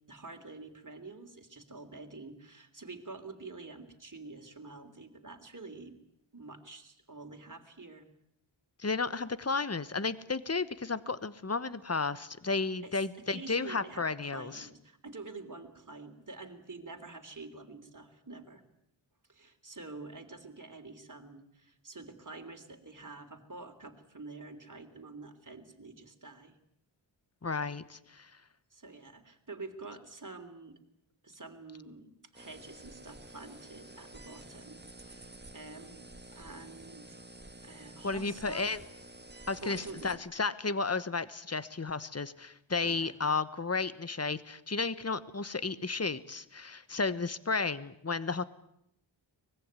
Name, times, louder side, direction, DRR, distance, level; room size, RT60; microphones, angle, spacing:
voice 1, 0.1-6.0 6.3-8.1 12.8-18.6 19.3-26.6 28.7-30.8 31.2-37.2 37.6-38.7 39.6-40.1 42.8-43.2, right 3 dB, 40° right, 6 dB, 3.3 m, -47 dB
voice 2, 8.8-14.7 27.4-28.3 38.0-38.8 39.5-48.4, left 4 dB, 30° left, 16 dB, 1.2 m, -33 dB
sound 1, 32.3-40.2, right 2 dB, 20° right, 1.8 m, -50 dB
24.0 x 20.5 x 9.5 m, 0.74 s
wide cardioid pair, 70°, 47 cm